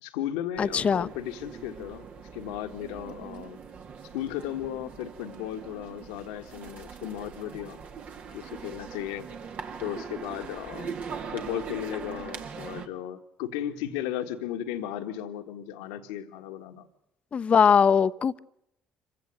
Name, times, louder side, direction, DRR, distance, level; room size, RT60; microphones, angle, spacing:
voice 1, 0.0-2.1 2.3-3.6 4.1-7.8 8.3-9.3 9.8-10.9 11.3-16.9, left 11 dB, 85° left, 1.7 m, -35 dB
sound 1, 0.5-12.9, right 6 dB, 60° right, 2.1 m, -41 dB
voice 2, 0.6-1.1 17.3-18.4, left 6 dB, 45° left, 0.8 m, -21 dB
26.0 x 16.0 x 7.8 m
hypercardioid pair, 60°, 3 cm